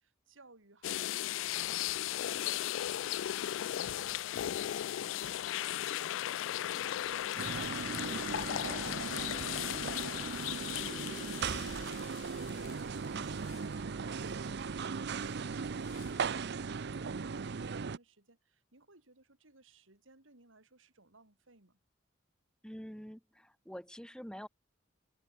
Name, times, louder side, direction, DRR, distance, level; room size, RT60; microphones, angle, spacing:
voice 1, 0.0-21.8, right 2 dB, 75° right, 3.7 m, -61 dB
sound 1, 0.8-13.1 13.5-13.6 15.9-16.1, left 12 dB, 70° left, 0.3 m, -36 dB
sound 2, 7.4-18.0, right 5 dB, 60° right, 0.6 m, -38 dB
voice 2, 22.6-24.5, equal, 5° left, 2.1 m, -46 dB
head